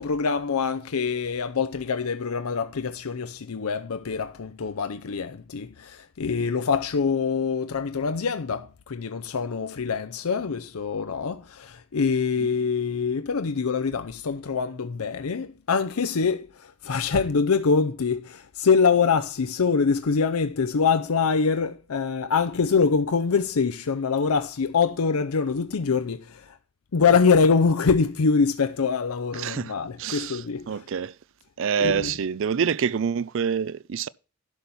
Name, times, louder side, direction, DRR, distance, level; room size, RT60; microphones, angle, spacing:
voice 1, 0.0-26.5 26.9-30.8 31.8-32.1, left 5 dB, 80° left, 0.6 m, -24 dB
voice 2, 29.3-29.7 30.0-31.1 31.6-34.1, right 7 dB, 60° right, 0.4 m, -26 dB
11.5 x 4.2 x 7.1 m
head